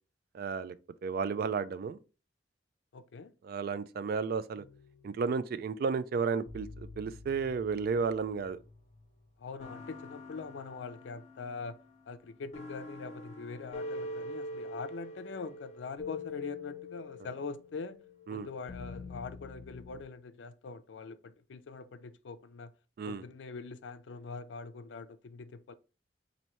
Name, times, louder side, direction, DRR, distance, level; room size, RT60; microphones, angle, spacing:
voice 1, 0.3-0.7 1.0-2.0 3.4-4.6 5.0-8.6 18.3-18.5 23.0-23.2, right 5 dB, 55° right, 0.3 m, -33 dB
voice 2, 2.9-3.3 9.4-11.8 12.1-18.0 18.3-22.7 23.1-25.7, left 4 dB, 85° left, 0.4 m, -43 dB
sound 1, 4.6-5.8 6.5-9.0 9.6-20.0, left 2 dB, 40° left, 0.6 m, -45 dB
4.3 x 2.7 x 2.9 m
head